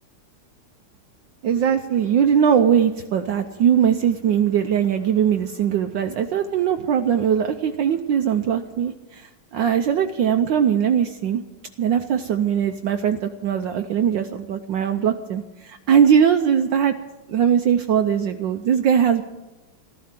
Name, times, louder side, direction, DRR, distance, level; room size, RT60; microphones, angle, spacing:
voice 1, 1.4-11.4 11.8-16.9 17.3-19.2, right 8 dB, 70° right, 7 dB, 1.3 m, -20 dB
14.0 x 13.5 x 7.4 m, 1.1 s
omnidirectional pair, 2.4 m